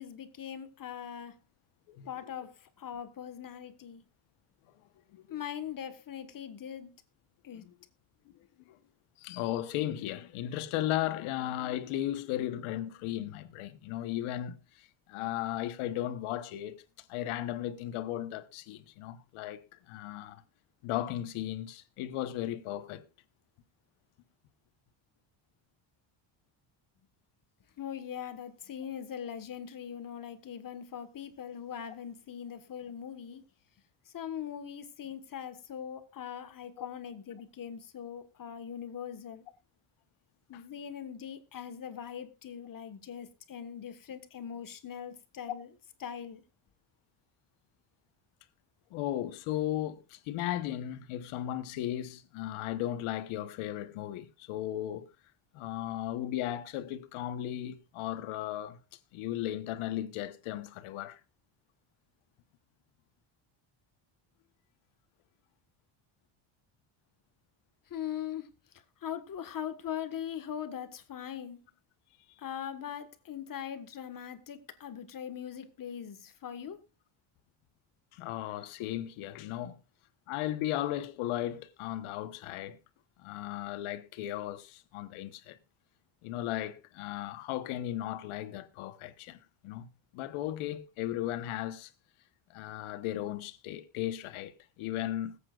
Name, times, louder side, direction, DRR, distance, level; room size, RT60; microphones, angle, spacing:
voice 1, 0.0-1.4 2.1-4.0 5.3-6.9 7.4-7.7 27.8-33.4 34.0-39.4 40.5-45.7 46.0-46.4 67.9-68.5 69.0-71.6 72.4-76.8, left 9 dB, 45° left, 1.5 m, -41 dB
voice 2, 9.2-16.8 17.1-19.6 19.9-20.4 20.8-23.0 36.8-36.9 45.5-45.6 48.9-55.1 55.5-58.8 59.1-61.2 78.1-79.8 80.3-82.8 83.2-85.6 86.2-89.9 90.1-91.9 92.5-95.4, left 13 dB, 85° left, 1.2 m, -36 dB
21.0 x 8.5 x 2.4 m
cardioid pair, 110°, 48 cm